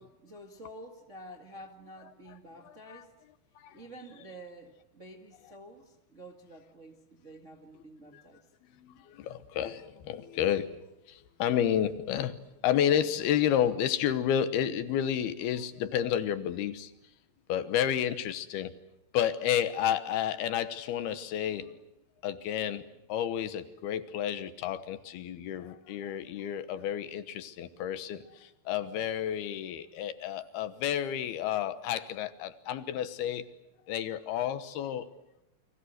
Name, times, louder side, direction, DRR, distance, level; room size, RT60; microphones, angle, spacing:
voice 1, 0.0-3.1 3.7-8.4, right 1 dB, 30° right, 3 dB, 1.4 m, -49 dB
voice 2, 2.6-3.0 3.6-3.8 8.1-8.2 8.8-10.8 11.1-12.4 12.6-16.9 17.5-18.7 19.1-21.8 22.2-22.8 23.1-33.4 33.9-35.1, left 10 dB, 75° left, 12 dB, 3.0 m, -31 dB
30.0 x 24.0 x 8.0 m, 0.84 s
omnidirectional pair, 4.7 m